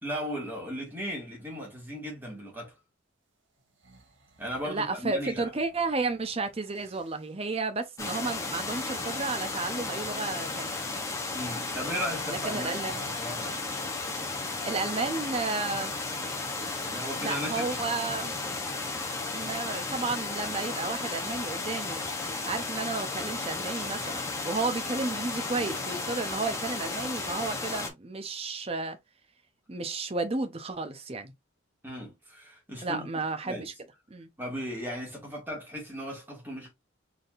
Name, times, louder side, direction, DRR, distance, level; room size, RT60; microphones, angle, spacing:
voice 1, 0.0-2.8 4.4-5.5 11.3-13.6 16.8-17.7 18.0-18.1 31.8-33.1 33.4-33.7 34.4-36.7, equal, 10° right, 2.0 m, -36 dB
sound 1, 3.6-7.3 8.1-10.1 11.7-14.0, right 2 dB, 65° right, 1.1 m, -51 dB
voice 2, 4.6-10.8 12.5-13.0 14.6-15.9 17.2-18.3 19.3-22.0 22.5-29.0 29.7-31.3 32.8-33.7 34.1-34.3, right 3 dB, 30° right, 0.6 m, -32 dB
sound 2, 8.0-27.9, left 3 dB, 15° left, 0.7 m, -34 dB
4.2 x 3.5 x 2.5 m
head